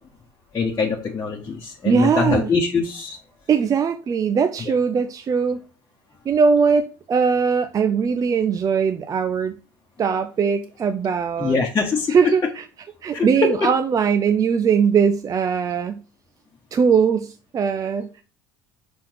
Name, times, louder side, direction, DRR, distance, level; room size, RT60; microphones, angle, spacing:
voice 1, 0.5-3.2 4.6-4.7 11.4-12.3 13.1-13.5, left 4 dB, 25° left, 1.2 m, -23 dB
voice 2, 1.8-2.5 3.5-5.6 6.3-9.5 10.0-11.6 12.1-12.7 13.0-16.0 16.7-18.1, right 6 dB, 30° right, 0.5 m, -20 dB
6.1 x 3.7 x 4.6 m
hypercardioid pair, 75°, 12 cm